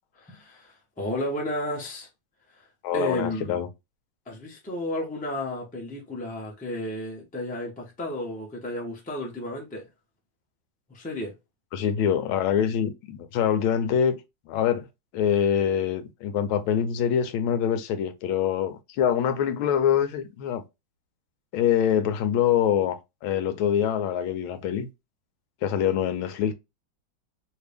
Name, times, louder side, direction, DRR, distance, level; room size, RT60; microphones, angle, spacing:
voice 1, 0.1-2.1 2.5-2.7 2.9-3.6 4.3-9.9 10.9-11.3, left 1 dB, 10° left, 0.5 m, -32 dB
voice 2, 2.8-3.7 11.7-14.2 14.5-14.9 15.1-20.6 21.5-24.9 25.6-26.5, left 9 dB, 85° left, 1.4 m, -24 dB
3.2 x 2.7 x 3.3 m
omnidirectional pair, 2.2 m